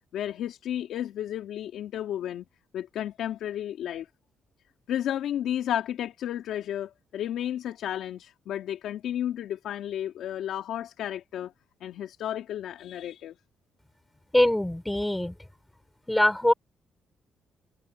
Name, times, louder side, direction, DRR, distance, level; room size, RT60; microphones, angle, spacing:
voice 1, 0.1-2.5 2.7-4.1 4.9-11.5 11.8-13.3, left 11 dB, 75° left, 2.9 m, -32 dB
voice 2, 14.3-15.3 16.1-16.5, left 1 dB, 5° left, 6.0 m, -23 dB
cardioid pair, 90°, 0 cm